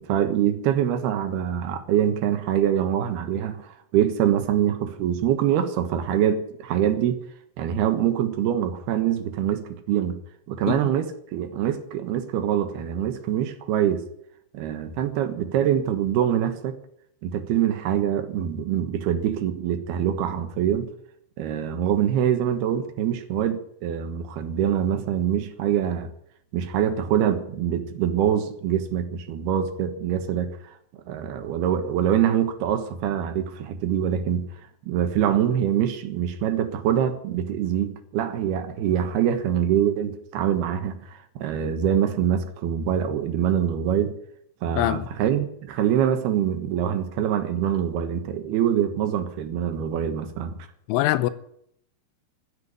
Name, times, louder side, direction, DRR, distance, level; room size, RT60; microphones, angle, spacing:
voice 1, 0.0-7.2 7.6-10.2 10.5-14.0 14.5-16.8 17.2-20.9 21.4-26.1 26.5-30.6 31.1-34.5 34.9-44.2 44.6-50.7, right 9 dB, 70° right, 3.0 m, -24 dB
voice 2, 44.8-45.1 50.9-51.3, left 15 dB, 90° left, 3.2 m, -23 dB
15.5 x 8.4 x 9.8 m
omnidirectional pair, 5.4 m